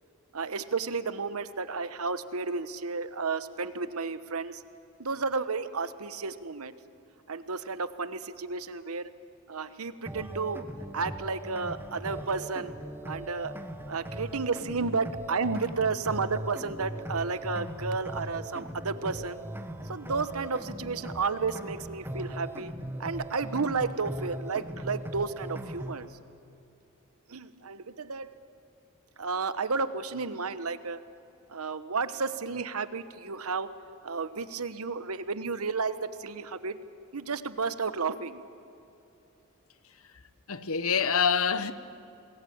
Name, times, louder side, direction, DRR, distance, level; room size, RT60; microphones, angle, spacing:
voice 1, 0.3-4.6 5.0-6.7 7.3-9.1 9.5-10.6 10.9-12.7 13.1-13.5 13.9-19.4 19.9-22.7 23.0-26.1 27.3-28.3 29.2-31.0 31.5-33.7 34.0-36.8 37.1-38.4, right 4 dB, 90° right, 1.1 m, -32 dB
sound 1, 10.1-26.1, right 1 dB, 10° right, 1.2 m, -39 dB
voice 2, 40.5-41.7, left 6 dB, 75° left, 1.0 m, -26 dB
27.5 x 20.0 x 8.7 m
head